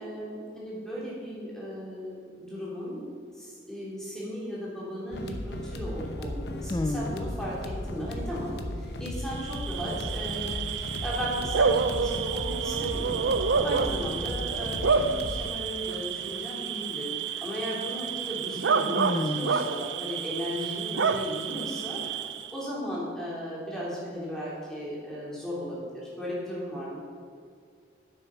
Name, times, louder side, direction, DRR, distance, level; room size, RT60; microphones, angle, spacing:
voice 1, 0.0-3.1 3.3-22.1 22.5-27.0, equal, 5° left, -7 dB, 3.2 m, -36 dB
sound 1, 5.1-15.5, left 1 dB, 65° left, 0.9 m, -36 dB
voice 2, 6.7-7.1 19.0-19.5, left 2 dB, 20° left, 6 dB, 0.3 m, -29 dB
Bark / Cricket, 9.3-22.6, right 5 dB, 90° right, 0.6 m, -29 dB
10.0 x 8.0 x 5.7 m, 2.2 s
head